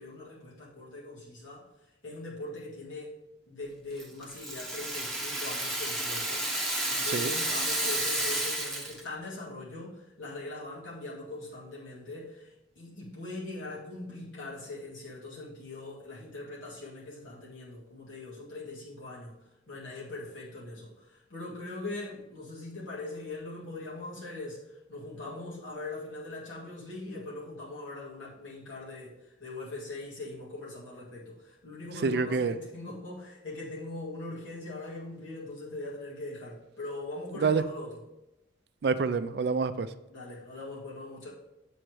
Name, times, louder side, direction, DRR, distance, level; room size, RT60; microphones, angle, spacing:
voice 1, 0.0-1.7 2.0-3.1 3.5-19.3 19.7-38.0 40.1-41.3, left 2 dB, 90° left, -7 dB, 1.8 m, -41 dB
Rattle (instrument), 4.0-9.1, right 1 dB, 5° left, 0.8 m, -31 dB
voice 2, 32.0-32.5 37.3-37.6 38.8-39.9, right 4 dB, 55° right, 12 dB, 0.3 m, -27 dB
7.7 x 3.9 x 4.6 m, 0.95 s
head